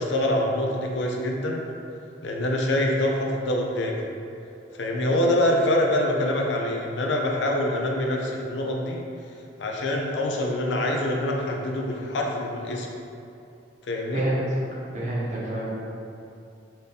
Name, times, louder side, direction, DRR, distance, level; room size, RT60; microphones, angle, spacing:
voice 1, 0.0-1.6 2.2-4.0 4.8-9.0 9.6-12.9 13.9-14.3, left 1 dB, 70° left, 0 dB, 0.5 m, -25 dB
voice 2, 14.9-15.7, right 1 dB, 40° right, -6 dB, 0.8 m, -27 dB
4.0 x 2.7 x 3.3 m, 2.7 s
head